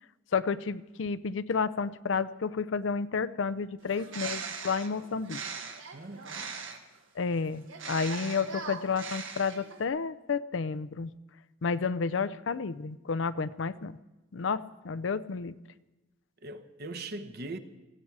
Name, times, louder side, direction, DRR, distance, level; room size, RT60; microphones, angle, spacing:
voice 1, 0.3-5.4 7.2-11.1 11.6-14.0 14.3-15.6, left 5 dB, 75° left, 0.5 m, -31 dB
Bird, 3.8-7.0 7.7-9.8, right 5 dB, 80° right, 1.6 m, -40 dB
voice 2, 5.9-6.5 16.4-17.6, right 2 dB, 55° right, 1.0 m, -40 dB
19.0 x 15.0 x 4.8 m
head